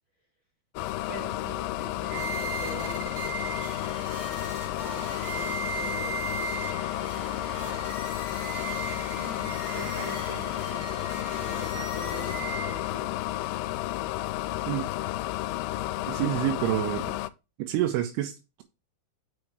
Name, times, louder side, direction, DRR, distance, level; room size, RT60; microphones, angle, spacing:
sound 1, 0.8-17.3, left 16 dB, 85° left, 2.7 m, -32 dB
voice 1, 1.1-3.5 4.9-6.3 9.7-13.3, right 2 dB, 65° right, 1.7 m, -44 dB
sound 2, 2.0-13.1, right 4 dB, 40° right, 2.3 m, -38 dB
voice 2, 16.1-17.2 17.6-18.6, right 13 dB, 90° right, 3.2 m, -28 dB
6.2 x 5.4 x 4.6 m
omnidirectional pair, 5.4 m